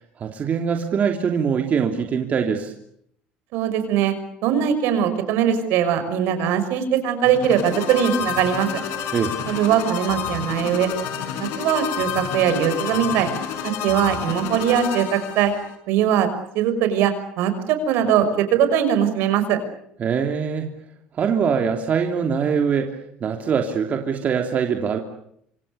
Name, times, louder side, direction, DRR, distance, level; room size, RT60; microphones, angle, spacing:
voice 1, 0.2-2.7 9.1-9.3 20.0-20.7 21.2-22.9 23.2-25.0, right 6 dB, 40° right, 4 dB, 3.1 m, -22 dB
voice 2, 3.5-4.1 4.4-8.7 9.5-10.9 11.4-13.3 13.6-15.5 15.9-16.3 16.5-19.6, right 9 dB, 70° right, 9 dB, 6.2 m, -21 dB
sound 1, 7.2-15.7, left 8 dB, 80° left, 5.9 m, -29 dB
27.5 x 26.0 x 6.9 m, 0.71 s
supercardioid pair, 105°, 4 cm